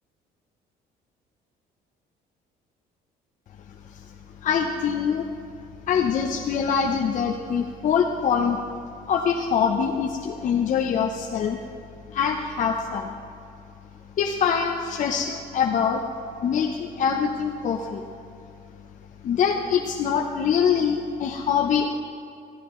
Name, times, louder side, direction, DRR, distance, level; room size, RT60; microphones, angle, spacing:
voice 1, 4.4-5.3 5.9-8.6 9.1-11.6 12.1-13.1 14.2-16.0 16.4-18.0 19.2-21.9, left 7 dB, 50° left, 2 dB, 0.8 m, -24 dB
14.5 x 14.0 x 3.2 m, 2.4 s
cardioid pair, 110°, 17 cm